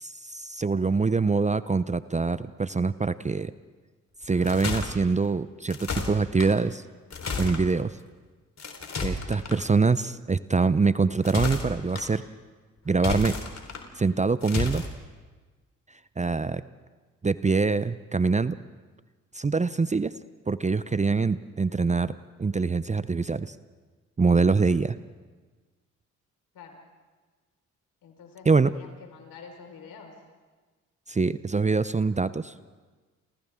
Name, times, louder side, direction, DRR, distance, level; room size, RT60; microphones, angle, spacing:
voice 1, 0.0-3.5 4.2-6.8 7.4-8.0 9.0-12.2 12.9-13.4 14.0-14.8 16.2-16.6 17.2-18.5 19.3-20.1 20.5-23.5 24.2-25.0 28.5-28.7 31.1-32.5, right 4 dB, 20° right, 15 dB, 0.7 m, -24 dB
sound 1, 4.2-4.9 5.7-6.5 7.1-7.6 8.6-9.6 11.1-12.0 12.9-13.8 14.4-14.9, left 4 dB, 45° left, 4.2 m, -32 dB
voice 2, 28.0-30.1, left 5 dB, 70° left, 3 dB, 4.9 m, -47 dB
29.5 x 29.0 x 3.7 m, 1.4 s
hypercardioid pair, 50°, 37 cm